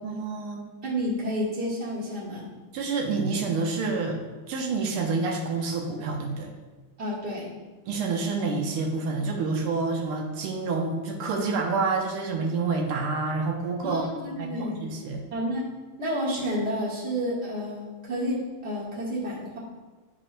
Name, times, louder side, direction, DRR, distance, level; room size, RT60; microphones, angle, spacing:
voice 1, 0.0-0.7 2.7-4.2 4.5-6.5 7.9-15.2, right 4 dB, 90° right, 1 dB, 1.7 m, -28 dB
voice 2, 0.8-2.5 7.0-7.5 13.8-14.8 15.3-15.7 16.0-19.6, equal, 35° right, -5 dB, 1.6 m, -30 dB
10.5 x 5.0 x 2.2 m, 1.3 s
omnidirectional pair, 2.3 m